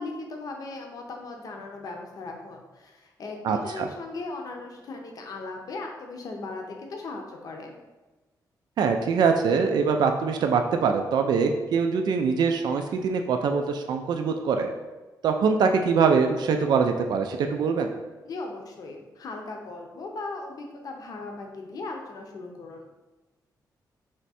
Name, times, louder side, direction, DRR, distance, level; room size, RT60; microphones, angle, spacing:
voice 1, 0.0-7.8 18.2-23.0, left 3 dB, 55° left, 2 dB, 0.6 m, -38 dB
voice 2, 3.4-3.9 8.8-14.7 15.2-17.9, right 5 dB, 70° right, 5 dB, 0.3 m, -23 dB
3.5 x 3.2 x 4.1 m, 1.2 s
wide cardioid pair, 135°, 7 cm